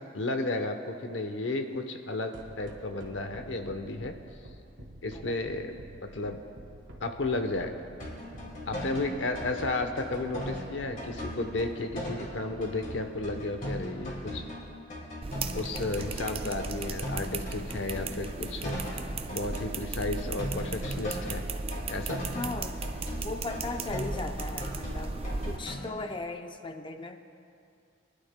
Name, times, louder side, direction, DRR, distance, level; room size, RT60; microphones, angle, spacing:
voice 1, 0.0-4.1 5.0-6.4 7.0-7.9 8.7-14.4 15.5-18.8 19.3-21.4 21.9-22.2, left 2 dB, 85° left, 6 dB, 0.9 m, -33 dB
sound 1, 2.3-14.6, right 1 dB, 85° right, 1.5 m, -47 dB
sound 2, 8.0-12.4 12.6-16.3 16.6-21.4 21.7-25.8, left 1 dB, 50° left, 3.1 m, -38 dB
sound 3, 15.2-25.6, right 3 dB, 30° right, 0.5 m, -36 dB
voice 2, 22.3-22.8 23.2-25.1 25.5-27.2, left 3 dB, 25° left, 6 dB, 0.6 m, -37 dB
23.5 x 11.5 x 2.2 m, 2.5 s
head